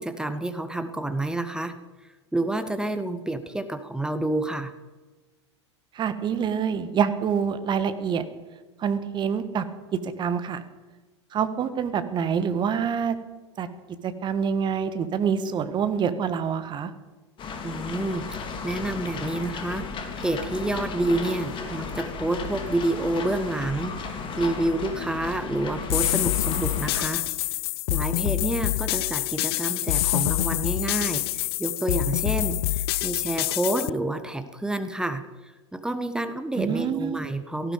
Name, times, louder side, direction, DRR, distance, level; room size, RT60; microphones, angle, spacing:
voice 1, 0.0-1.8 2.3-4.7 17.6-18.3 18.6-19.9 20.2-27.3 27.9-35.2 35.7-37.7, right 1 dB, 5° right, 10 dB, 1.2 m, -28 dB
voice 2, 5.9-8.2 8.8-9.6 10.0-10.6 11.3-13.1 13.6-13.7 14.0-16.9 36.6-37.2, right 7 dB, 30° right, 11 dB, 1.5 m, -26 dB
sound 1, 17.4-27.1, left 4 dB, 35° left, 3.0 m, -35 dB
sound 2, 25.9-33.9, left 16 dB, 55° left, 0.4 m, -26 dB
18.0 x 15.0 x 5.3 m, 1.2 s
figure-of-eight pair, 85°, 15 cm